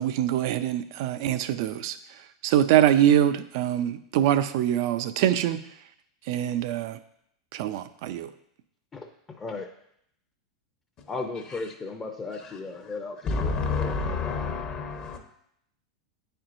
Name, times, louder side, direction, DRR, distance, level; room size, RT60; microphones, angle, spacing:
voice 1, 0.0-2.0 2.4-5.6 6.3-7.0 7.5-8.3, right 11 dB, 60° right, 12 dB, 0.4 m, -24 dB
voice 2, 8.9-9.7 11.1-14.5, left 3 dB, 20° left, 2 dB, 0.6 m, -36 dB
voice 3, 13.3-15.2, left 4 dB, 40° left, 4 dB, 1.0 m, -28 dB
9.2 x 4.4 x 2.6 m, 0.73 s
hypercardioid pair, 115°, 3 cm